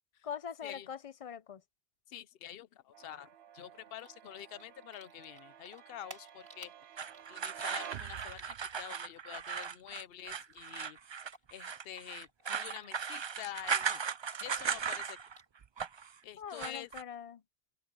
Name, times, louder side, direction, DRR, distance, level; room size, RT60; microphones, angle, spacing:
voice 1, 0.2-1.6 16.4-17.4, left 8 dB, 45° left, 0.5 m, -43 dB
voice 2, 2.1-6.7 7.3-11.0 11.5-14.0 14.4-15.3 16.2-16.9, left 11 dB, 70° left, 0.9 m, -47 dB
sound 1, 2.9-8.8, right 10 dB, 80° right, 1.0 m, -51 dB
Typing, 4.0-5.4 5.7-10.1 10.4-14.0 14.3-15.6, right 1 dB, 65° right, 6.3 m, -54 dB
sound 2, 7.0-15.4 15.6-16.1 16.5-17.0, right 6 dB, 45° right, 0.3 m, -37 dB
open air
omnidirectional pair, 1.0 m